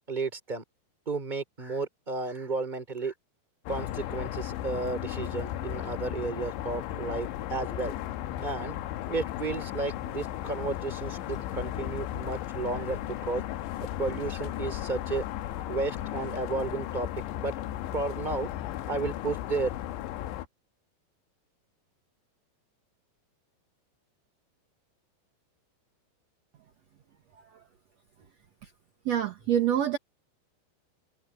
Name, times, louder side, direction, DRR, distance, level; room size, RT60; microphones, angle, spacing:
voice 1, 0.1-0.6 1.1-3.1 3.7-7.9 8.4-8.8 9.1-13.4 14.0-15.2 15.7-17.1 17.3-17.5 17.9-18.5 18.9-19.7, right 3 dB, 10° right, 3.1 m, -33 dB
sound 1, 3.7-20.5, left 13 dB, 90° left, 3.3 m, -35 dB
voice 2, 29.1-30.0, right 10 dB, 60° right, 1.8 m, -25 dB
omnidirectional pair, 5.1 m